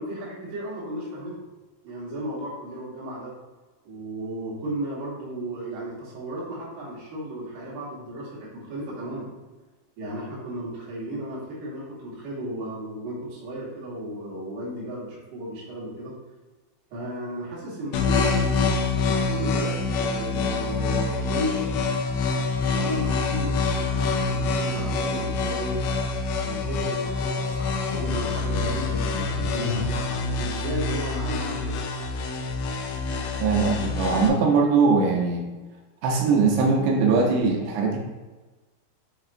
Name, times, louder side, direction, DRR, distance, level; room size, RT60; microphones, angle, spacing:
voice 1, 0.0-1.5 1.8-3.3 3.9-9.3 10.0-16.1 16.9-21.7 22.6-25.8 26.4-31.8 33.0-33.2, right 1 dB, 65° right, -6 dB, 2.3 m, -34 dB
sound 1, 17.9-34.3, left 3 dB, 85° left, 2.5 m, -26 dB
voice 2, 33.4-35.5 36.0-38.0, right 4 dB, 80° right, 1 dB, 2.5 m, -21 dB
6.9 x 2.9 x 2.4 m, 1.2 s
omnidirectional pair, 5.2 m